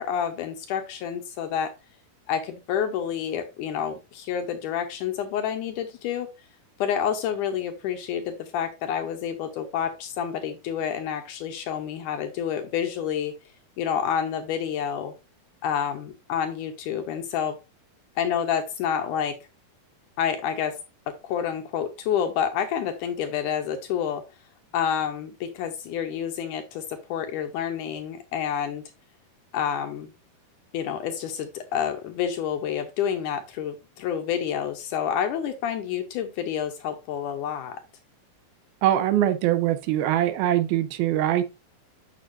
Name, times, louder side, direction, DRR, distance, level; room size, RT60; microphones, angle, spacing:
voice 1, 0.0-1.7 2.3-6.3 6.8-13.3 13.8-15.1 15.6-17.5 18.2-19.3 20.2-20.8 21.2-24.2 24.7-26.8 27.1-28.8 29.5-30.1 30.7-37.8, left 8 dB, 75° left, 1.9 m, -28 dB
voice 2, 38.8-41.4, right 12 dB, 85° right, 2.5 m, -22 dB
7.9 x 6.7 x 2.5 m
omnidirectional pair, 4.4 m